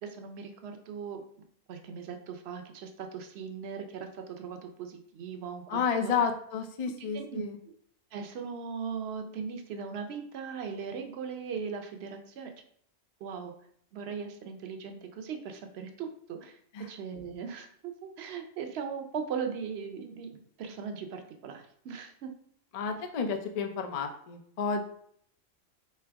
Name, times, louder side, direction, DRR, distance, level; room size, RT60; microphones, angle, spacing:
voice 1, 0.0-1.2 1.7-6.1 7.0-7.7 8.1-12.5 13.2-13.5 13.9-16.6 16.9-22.3, right 6 dB, 60° right, 5 dB, 0.8 m, -39 dB
voice 2, 5.7-7.6 16.7-16.9 22.7-24.9, left 6 dB, 65° left, 4 dB, 0.4 m, -31 dB
3.8 x 3.4 x 3.4 m, 0.64 s
omnidirectional pair, 1.4 m